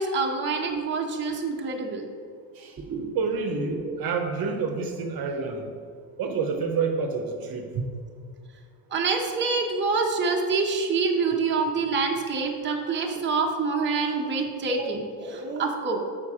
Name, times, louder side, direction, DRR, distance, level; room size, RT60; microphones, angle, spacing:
voice 1, 0.0-2.0 2.9-3.1 3.9-4.0 8.9-16.0, right 4 dB, 25° right, 0 dB, 0.9 m, -26 dB
voice 2, 3.1-5.7 6.2-7.8, right 5 dB, 55° right, 3 dB, 0.9 m, -28 dB
7.1 x 5.3 x 4.8 m, 2.2 s
cardioid pair, 120°, 43 cm